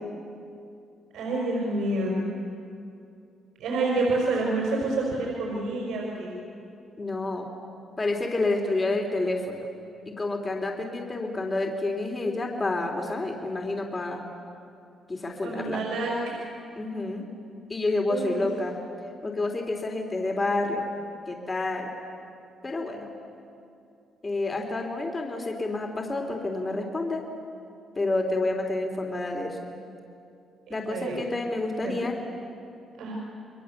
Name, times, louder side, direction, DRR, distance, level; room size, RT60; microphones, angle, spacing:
voice 1, 1.1-2.2 3.6-6.4 15.4-16.1 18.1-18.5 30.7-31.2 31.8-32.0 33.0-33.1, right 2 dB, 85° right, -3 dB, 5.6 m, -28 dB
voice 2, 7.0-7.5 8.0-9.7 10.0-14.3 15.1-15.8 16.8-17.3 17.7-18.7 19.2-20.8 21.3-21.9 22.6-23.1 24.2-27.2 27.9-29.7 30.7-32.1, left 2 dB, 30° left, 1 dB, 3.3 m, -29 dB
30.0 x 22.5 x 7.3 m, 2.6 s
cardioid pair, 90°, 0 cm